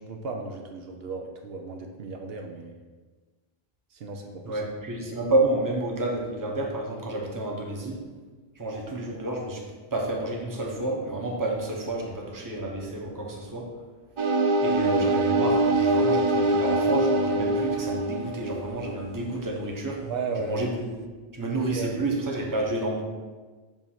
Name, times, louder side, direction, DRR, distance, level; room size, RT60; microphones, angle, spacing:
voice 1, 0.0-2.8 3.9-4.6 20.0-20.5 21.7-22.0, right 4 dB, 75° right, 3 dB, 0.9 m, -35 dB
voice 2, 4.4-8.0 8.6-9.6 9.9-13.7 14.6-20.0 20.4-20.9 21.3-23.0, right 2 dB, 20° right, -1 dB, 0.9 m, -30 dB
sound 1, 14.2-19.3, right 2 dB, 50° right, 0.3 m, -24 dB
7.0 x 2.7 x 5.7 m, 1.4 s
omnidirectional pair, 1.1 m